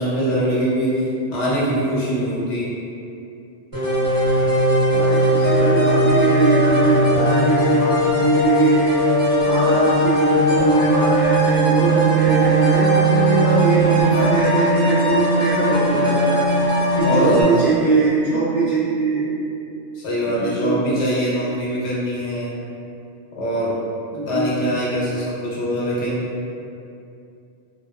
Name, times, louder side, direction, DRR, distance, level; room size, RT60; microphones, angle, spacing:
voice 1, 0.0-2.7 17.0-17.7 19.9-22.5 23.4-23.8 24.3-26.2, equal, 75° left, -7 dB, 1.0 m, -23 dB
sound 1, 3.7-17.4, right 1 dB, 20° right, 0.8 m, -18 dB
voice 2, 4.9-8.8 9.4-16.4 16.9-19.3 20.2-20.9 24.1-24.5, right 2 dB, 60° right, -12 dB, 0.4 m, -21 dB
2.7 x 2.2 x 2.3 m, 2.6 s
omnidirectional pair, 1.3 m